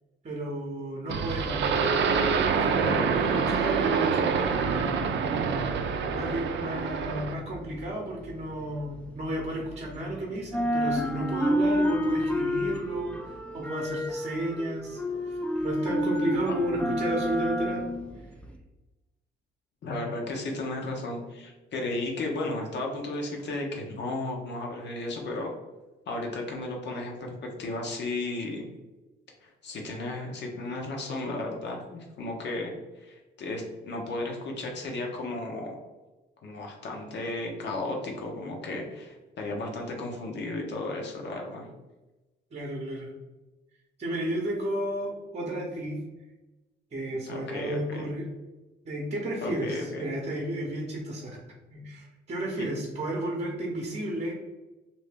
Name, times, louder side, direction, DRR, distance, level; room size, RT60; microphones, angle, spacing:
voice 1, 0.2-1.8 2.5-5.0 6.1-13.1 13.5-17.9 42.5-43.1 44.0-46.0 46.9-48.3 48.8-51.3 51.7-54.4, right 1 dB, 35° right, -2 dB, 0.8 m, -32 dB
sound 1, 1.1-7.4, right 5 dB, 65° right, 0.5 m, -26 dB
sound 2, 7.3-10.1 10.4-18.6, equal, 5° left, 0.4 m, -30 dB
voice 2, 19.8-25.5 26.1-28.6 29.4-35.8 36.4-41.6 47.1-48.1 49.4-50.1 52.6-52.7, left 2 dB, 60° left, 1 dB, 0.9 m, -34 dB
2.8 x 2.7 x 3.3 m, 1.1 s
cardioid pair, 90°, 20 cm